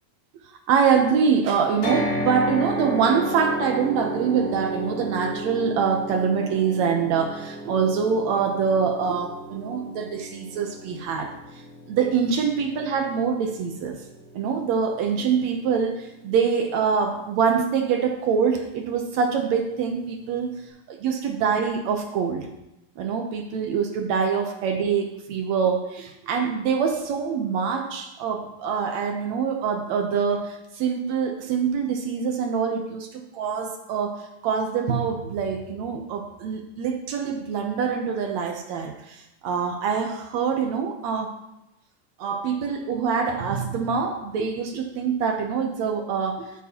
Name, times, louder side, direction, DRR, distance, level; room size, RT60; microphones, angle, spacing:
voice 1, 0.7-14.0 14.3-20.5 20.9-22.5 23.0-41.3 42.2-46.5, right 6 dB, 70° right, 4 dB, 1.7 m, -25 dB
sound 1, 1.8-15.9, right 1 dB, 80° left, 4.4 m, -33 dB
13.5 x 8.6 x 2.9 m, 0.91 s
omnidirectional pair, 4.0 m